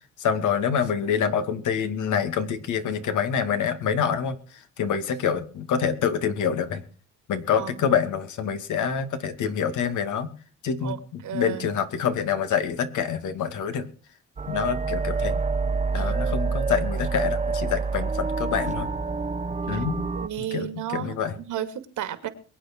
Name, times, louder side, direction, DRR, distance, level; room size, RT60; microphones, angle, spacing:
voice 1, 0.2-4.4 4.8-6.8 7.3-10.3 10.6-13.9 14.5-15.4 15.9-18.9 19.7-20.0 20.4-21.4, left 7 dB, 80° left, 8 dB, 2.3 m, -26 dB
voice 2, 7.6-7.9 8.5-8.6 10.8-11.0 11.2-11.7 15.9-16.3 16.7-16.9 19.7-19.8 20.2-22.3, right 11 dB, 80° right, 9 dB, 2.4 m, -34 dB
sound 1, 14.4-20.3, right 4 dB, 25° right, 0.9 m, -27 dB
23.0 x 9.0 x 4.5 m, 0.39 s
cardioid pair, 90°, 30 cm